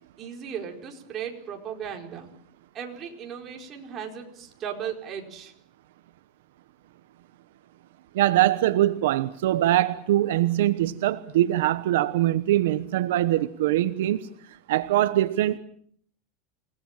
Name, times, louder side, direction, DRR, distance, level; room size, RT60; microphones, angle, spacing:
voice 1, 0.2-2.3 2.7-5.5, right 8 dB, 30° right, 4.7 m, -36 dB
voice 2, 8.1-14.3 14.7-15.6, right 14 dB, 85° right, 1.1 m, -23 dB
29.0 x 19.0 x 7.5 m
supercardioid pair, 155°, 0 cm